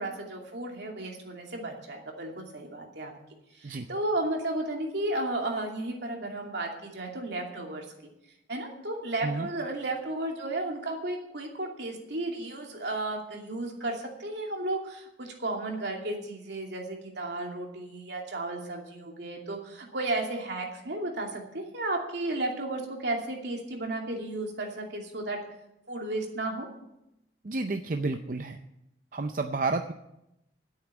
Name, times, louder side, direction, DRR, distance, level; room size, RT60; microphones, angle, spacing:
voice 1, 0.0-3.1 3.6-7.8 8.5-25.4 25.9-26.7, right 2 dB, 70° right, 1 dB, 2.7 m, -33 dB
voice 2, 27.4-28.6 29.1-29.9, right 3 dB, 45° right, 7 dB, 0.5 m, -30 dB
10.5 x 8.6 x 8.2 m, 0.85 s
head